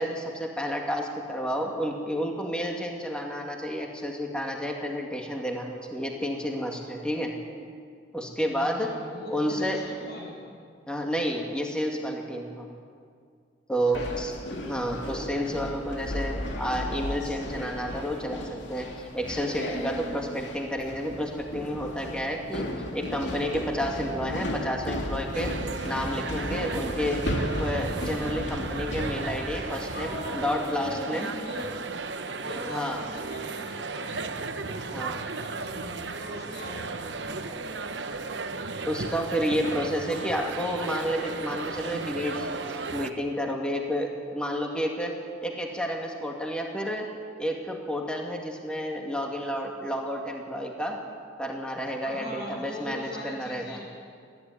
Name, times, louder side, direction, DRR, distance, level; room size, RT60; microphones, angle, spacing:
voice 1, 0.0-7.3 8.1-9.0 9.3-9.8 10.9-12.7 13.7-25.6 25.8-27.3 27.6-31.3 32.7-33.0 34.9-35.3 38.9-45.1 45.4-47.1 47.4-51.0 51.4-53.8, equal, 5° left, 0 dB, 1.9 m, -30 dB
voice 2, 8.4-10.5 13.9-14.8 29.9-31.8 32.4-38.3 52.0-53.9, left 1 dB, 65° left, -2 dB, 6.4 m, -41 dB
sound 1, 13.9-30.4, left 1 dB, 80° left, 2.4 m, -35 dB
sound 2, 25.3-43.1, right 4 dB, 75° right, 1.0 m, -35 dB
20.0 x 14.0 x 9.7 m, 2.2 s
head